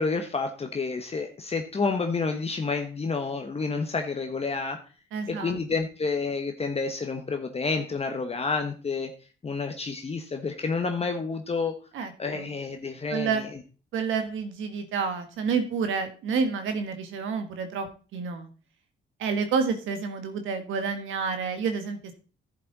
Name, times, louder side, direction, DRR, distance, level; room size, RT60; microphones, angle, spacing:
voice 1, 0.0-4.8 5.3-9.1 9.4-11.8 12.2-13.5, left 4 dB, 30° left, 5 dB, 1.2 m, -29 dB
voice 2, 5.1-5.6 11.9-12.5 13.1-13.5 13.9-18.5 19.2-22.1, right 5 dB, 80° right, 8 dB, 1.7 m, -29 dB
11.0 x 7.6 x 4.1 m, 0.36 s
cardioid pair, 90°, 20 cm